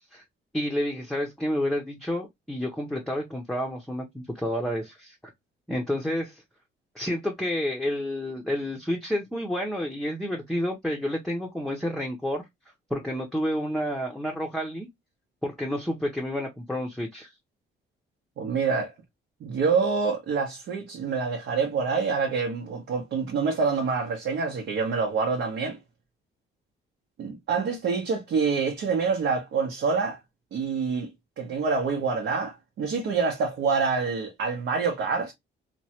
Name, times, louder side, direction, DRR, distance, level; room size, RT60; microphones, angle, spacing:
voice 1, 0.5-5.2 5.7-6.4 6.9-12.4 12.9-14.9 15.4-17.3, equal, ahead, 0.6 m, -30 dB
voice 2, 18.4-18.9 19.4-25.8 27.2-30.2 30.5-31.1 31.4-35.3, right 5 dB, 70° right, 0.8 m, -26 dB
3.0 x 2.2 x 2.8 m
cardioid pair, 90°, 20 cm